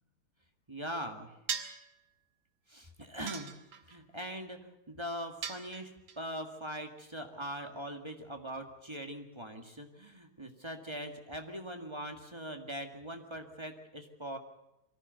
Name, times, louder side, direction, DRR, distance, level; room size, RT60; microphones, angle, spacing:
voice 1, 0.7-1.3 2.7-3.6 3.9-14.4, equal, 15° right, 4 dB, 1.7 m, -41 dB
sound 1, 1.5-1.9 3.3-4.0 5.4-6.2, right 7 dB, 65° right, 2.3 m, -38 dB
23.5 x 15.0 x 8.1 m, 0.91 s
omnidirectional pair, 2.4 m